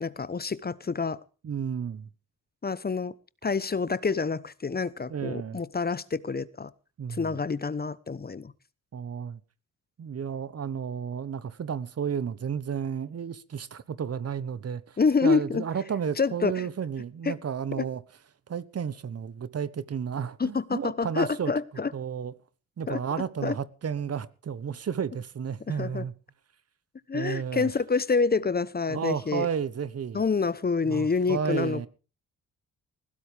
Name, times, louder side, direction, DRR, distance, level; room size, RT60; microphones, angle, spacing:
voice 1, 0.0-1.2 2.6-3.1 3.4-6.7 7.1-8.5 15.0-15.6 16.2-16.7 17.2-17.3 17.7-17.9 20.4-21.9 22.9-23.0 23.4-23.6 25.7-26.0 27.1-29.5 30.1-31.9, left 4 dB, 30° left, 1.0 m, -27 dB
voice 2, 1.4-2.1 5.1-5.6 7.0-7.4 8.9-9.4 10.0-18.0 18.5-21.5 21.9-22.3 22.8-26.1 27.1-27.7 28.9-30.2 30.9-31.9, right 7 dB, 45° right, 1.2 m, -32 dB
20.5 x 15.5 x 3.5 m
supercardioid pair, 55°, 33 cm